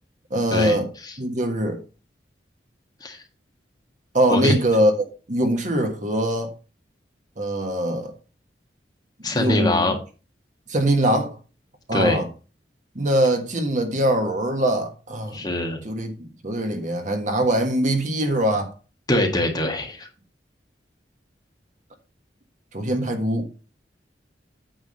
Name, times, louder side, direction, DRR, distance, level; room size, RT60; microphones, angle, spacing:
voice 1, 0.3-0.9 1.2-1.8 4.1-4.9 5.3-6.5 7.4-8.1 9.2-9.9 10.7-11.3 11.9-12.3 12.9-15.5 15.8-18.7 22.7-23.5, right 1 dB, 45° right, 1.5 m, -22 dB
voice 2, 9.2-10.0 11.9-12.2 15.3-15.8 19.1-20.1, left 1 dB, 20° left, 1.7 m, -23 dB
9.0 x 3.7 x 6.4 m
head